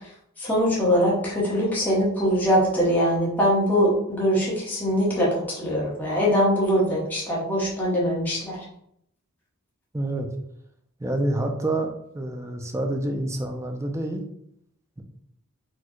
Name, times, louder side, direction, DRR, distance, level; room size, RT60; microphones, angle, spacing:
voice 1, 0.4-8.6, equal, 10° left, -6 dB, 1.0 m, -22 dB
voice 2, 9.9-10.3 11.0-14.3 15.0-15.1, right 1 dB, 15° right, 3 dB, 0.4 m, -27 dB
4.4 x 2.2 x 4.5 m, 0.73 s
head